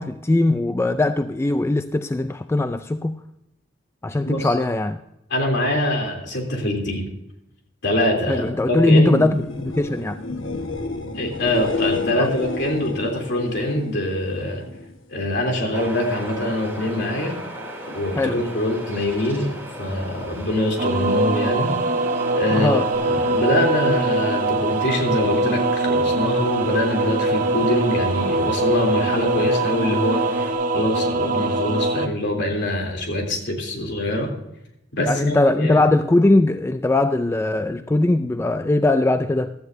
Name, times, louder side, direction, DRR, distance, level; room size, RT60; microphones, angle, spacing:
voice 1, 0.0-3.2 4.0-5.0 8.3-10.2 12.2-12.3 18.1-18.4 22.5-22.9 35.0-39.5, left 2 dB, 15° left, 0.3 m, -20 dB
voice 2, 5.3-7.0 7.8-9.2 11.1-14.6 15.1-17.4 17.9-21.7 22.3-34.3 34.9-35.8, left 1 dB, 60° left, 3.1 m, -24 dB
sound 1, 9.2-15.0 15.3-15.9 22.9-23.0, left 3 dB, 80° left, 1.3 m, -31 dB
sound 2, 15.7-30.5, equal, 10° right, 2.8 m, -37 dB
sound 3, 20.8-32.1, right 2 dB, 45° right, 1.0 m, -22 dB
15.5 x 13.0 x 2.6 m
head